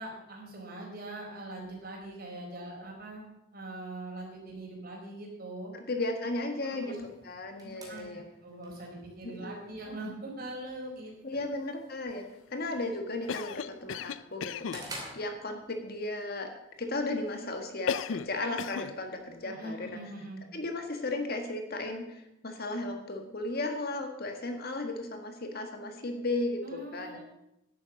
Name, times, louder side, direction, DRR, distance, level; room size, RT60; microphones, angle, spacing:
voice 1, 0.0-3.2 3.5-5.7 6.6-7.0 7.7-11.1 19.4-20.4 26.6-27.2, right 1 dB, 50° right, -1 dB, 4.3 m, -42 dB
voice 2, 5.7-7.0 7.2-8.2 9.2-9.7 11.2-16.5 16.8-20.0 20.5-27.2, left 2 dB, 50° left, 5 dB, 1.7 m, -35 dB
sound 1, 6.9-15.9, right 1 dB, 20° right, 2.9 m, -51 dB
Cough, 13.3-14.8 17.9-18.3 18.6-18.9, left 7 dB, 75° left, 0.4 m, -34 dB
11.0 x 8.9 x 7.2 m, 0.85 s
head